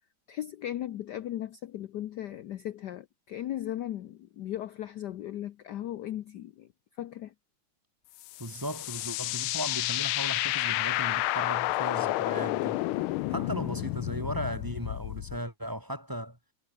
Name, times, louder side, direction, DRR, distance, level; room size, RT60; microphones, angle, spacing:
voice 1, 0.3-6.7 7.0-7.3, left 12 dB, 65° left, 1.2 m, -37 dB
sound 1, 8.2-15.4, left 18 dB, 90° left, 1.5 m, -30 dB
voice 2, 8.4-12.8 13.3-16.4, equal, 10° right, 3.3 m, -37 dB
omnidirectional pair, 2.2 m